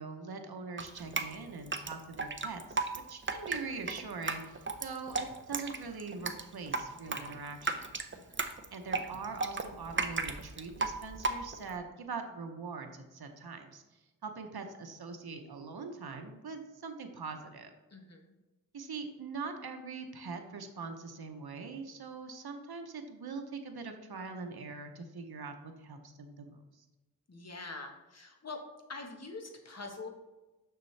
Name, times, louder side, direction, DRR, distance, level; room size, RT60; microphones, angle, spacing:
voice 1, 0.0-7.9 8.7-17.7 18.7-26.6, right 4 dB, 85° right, 5 dB, 0.8 m, -42 dB
Drip, 0.8-11.8, right 3 dB, 35° right, 0.6 m, -35 dB
voice 2, 17.9-18.3 27.3-28.6 28.9-30.2, left 3 dB, 45° left, 3 dB, 1.2 m, -44 dB
6.7 x 6.4 x 3.2 m, 1.1 s
wide cardioid pair, 60°, 37 cm